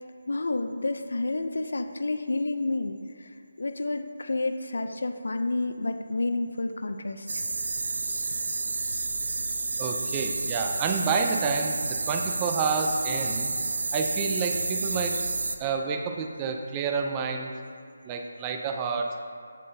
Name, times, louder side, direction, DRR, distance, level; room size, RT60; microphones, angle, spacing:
voice 1, 0.3-7.3, left 2 dB, 80° left, 7 dB, 0.4 m, -30 dB
sound 1, 7.3-15.6, right 3 dB, 70° right, 0.6 m, -30 dB
voice 2, 9.8-13.6 13.9-15.2 15.6-17.5 18.0-19.2, right 5 dB, 20° right, 3 dB, 0.4 m, -29 dB
7.5 x 7.4 x 2.7 m, 2.3 s
figure-of-eight pair, 165°, 0 cm